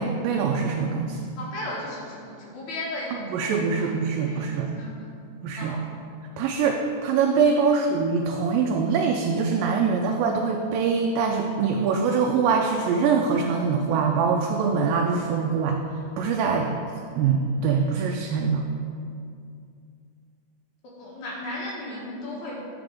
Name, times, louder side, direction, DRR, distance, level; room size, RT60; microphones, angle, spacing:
voice 1, 0.0-1.3 3.3-4.7 5.4-5.8 6.4-15.8 16.2-16.7 17.2-18.7, right 5 dB, 85° right, 1 dB, 2.2 m, -23 dB
voice 2, 1.4-5.1 5.6-5.8 7.7-7.8 20.8-22.6, left 1 dB, 65° left, -4 dB, 2.1 m, -36 dB
8.9 x 5.1 x 3.5 m, 2.4 s
omnidirectional pair, 4.0 m